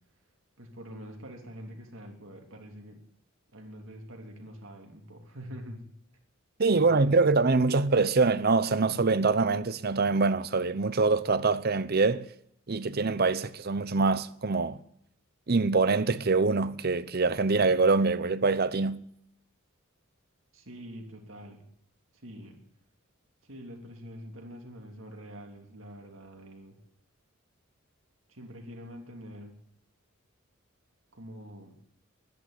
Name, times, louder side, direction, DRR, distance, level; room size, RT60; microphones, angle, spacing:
voice 1, 0.6-3.0 3.5-5.9 6.7-7.8 20.5-21.7 22.2-22.6 23.4-26.8 28.3-29.5 31.1-31.8, equal, 75° right, 3.3 m, -45 dB
voice 2, 6.6-12.3 12.7-14.8 15.5-19.0, right 3 dB, 50° right, 0.8 m, -24 dB
12.0 x 10.5 x 9.8 m
head